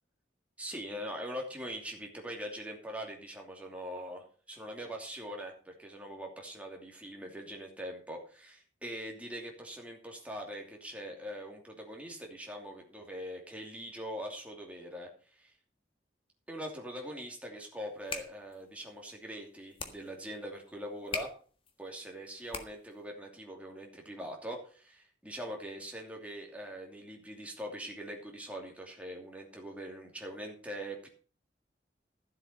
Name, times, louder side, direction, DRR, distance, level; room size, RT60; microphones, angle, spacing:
voice 1, 0.6-15.5 16.5-21.3 21.8-31.1, equal, 10° right, 0 dB, 2.7 m, -42 dB
sound 1, 17.8-23.0, left 4 dB, 30° left, 1.5 m, -44 dB
13.5 x 7.8 x 5.5 m, 0.41 s
head